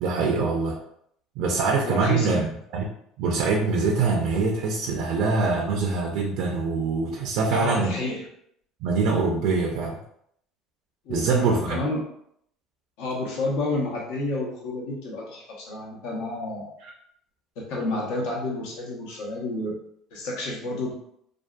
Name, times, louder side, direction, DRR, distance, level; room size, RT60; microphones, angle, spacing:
voice 1, 0.0-0.8 1.4-2.5 2.7-2.9 3.2-7.9 8.8-10.0 11.1-11.8 16.8-16.9, right 4 dB, 70° right, 0 dB, 0.4 m, -24 dB
voice 2, 1.8-2.4 7.5-8.2 11.0-12.0 13.0-16.7 17.7-19.8 20.1-20.9, left 2 dB, 80° left, -3 dB, 0.9 m, -30 dB
2.5 x 2.4 x 2.2 m, 0.70 s
cardioid pair, 150°, 0 cm